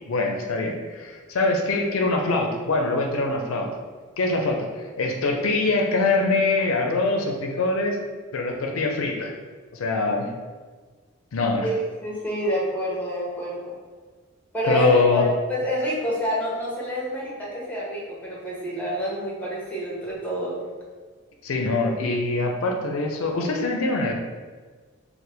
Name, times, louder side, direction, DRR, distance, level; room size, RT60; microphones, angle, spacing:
voice 1, 0.1-3.7 4.2-8.0 8.3-9.3 9.7-10.3 11.3-11.7 14.6-15.3 21.4-24.1, left 3 dB, 85° left, 2 dB, 0.5 m, -23 dB
voice 2, 11.6-13.7 14.5-20.6, equal, 10° left, -5 dB, 0.9 m, -28 dB
4.4 x 2.1 x 3.3 m, 1.4 s
head